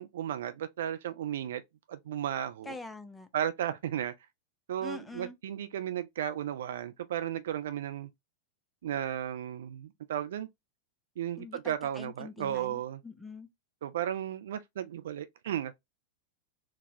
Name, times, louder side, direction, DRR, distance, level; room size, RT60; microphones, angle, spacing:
voice 1, 0.0-1.6 1.9-2.8 3.3-4.1 4.7-8.1 8.8-10.5 11.2-13.0 13.8-15.7, right 10 dB, 60° right, 0.4 m, -34 dB
voice 2, 2.7-3.3 4.8-5.3 11.4-13.5, left 3 dB, 5° left, 0.6 m, -44 dB
3.9 x 2.2 x 2.8 m
figure-of-eight pair, 90°, 0 cm